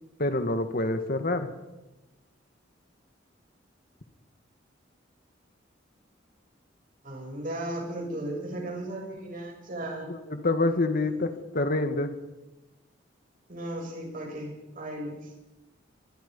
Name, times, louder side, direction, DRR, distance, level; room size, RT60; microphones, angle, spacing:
voice 1, 0.2-1.5 10.1-12.1, left 2 dB, 50° left, 8 dB, 1.8 m, -27 dB
voice 2, 7.0-10.1 11.1-11.2 13.5-15.3, right 1 dB, 50° right, 1 dB, 7.5 m, -36 dB
24.0 x 23.0 x 5.5 m, 1.0 s
head